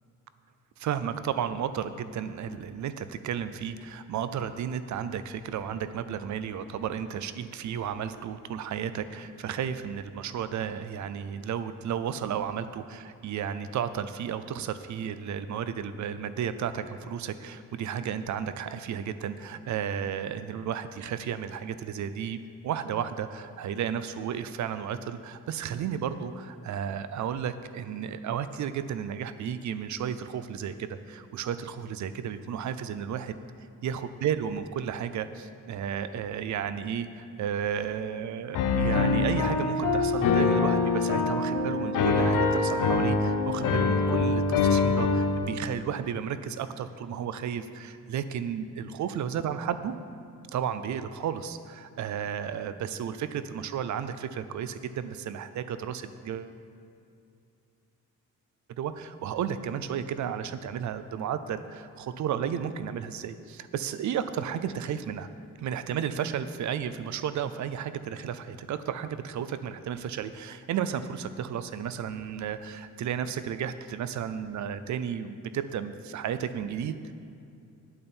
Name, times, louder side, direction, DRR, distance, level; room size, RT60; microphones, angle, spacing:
voice 1, 0.8-33.4 33.8-49.9 50.5-56.5 58.8-65.3 65.6-77.1, right 8 dB, 65° right, 12 dB, 0.5 m, -33 dB
Piano, 38.5-45.4, left 4 dB, 85° left, 0.9 m, -24 dB
8.7 x 8.6 x 4.4 m, 2.5 s
cardioid pair, 115°, 31 cm